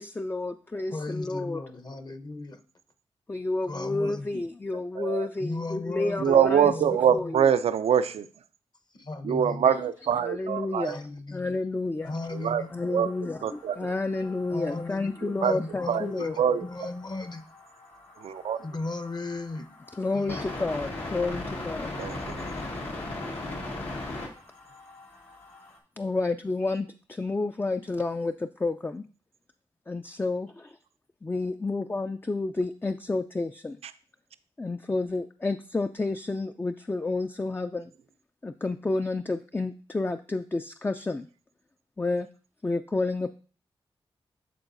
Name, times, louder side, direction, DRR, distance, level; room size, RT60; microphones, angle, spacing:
voice 1, 0.0-1.6 3.3-6.7 7.1-7.5 9.6-9.8 10.2-11.0 11.3-12.1 12.7-13.4 13.8-16.4 20.0-22.0 26.0-29.0 29.9-30.8 31.2-33.8 34.6-37.9 38.4-41.3 42.0-42.3 42.6-43.3, left 3 dB, 20° left, 7 dB, 0.4 m, -30 dB
voice 2, 0.9-2.6 3.6-4.4 5.4-7.3 8.9-9.9 10.8-11.5 12.0-12.9 14.5-15.1 15.3-17.4 18.6-19.7 20.1-20.5, left 2 dB, 45° left, 9 dB, 0.9 m, -36 dB
voice 3, 5.0-5.3 6.2-8.3 9.2-11.0 12.4-12.6 12.9-13.1 13.4-13.9 15.2-15.5 15.9-16.1 16.4-16.6 18.2-18.6 22.0-22.5, right 8 dB, 80° right, 13 dB, 0.4 m, -24 dB
sound 1, 12.0-25.8, left 2 dB, 80° left, 1.6 m, -40 dB
11.5 x 3.9 x 2.6 m, 0.40 s
cardioid pair, 40°, 10 cm